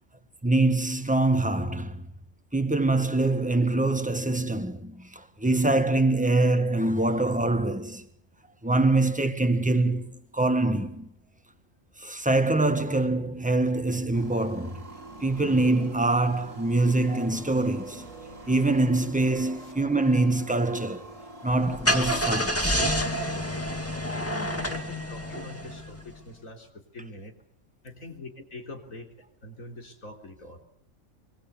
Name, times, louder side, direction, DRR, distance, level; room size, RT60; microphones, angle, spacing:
voice 1, 0.4-2.1 2.5-8.1 8.6-11.1 12.0-14.8 15.2-18.1 18.5-21.1 21.4-22.8, right 2 dB, 5° right, 1.5 m, -24 dB
sound 1, 14.1-24.5, right 2 dB, 70° right, 3.8 m, -45 dB
Car / Engine starting, 21.5-26.1, equal, 10° left, 2.1 m, -28 dB
voice 2, 23.9-27.3 27.8-29.1 29.4-30.6, left 2 dB, 85° left, 3.9 m, -44 dB
25.5 x 24.5 x 7.0 m
omnidirectional pair, 1.4 m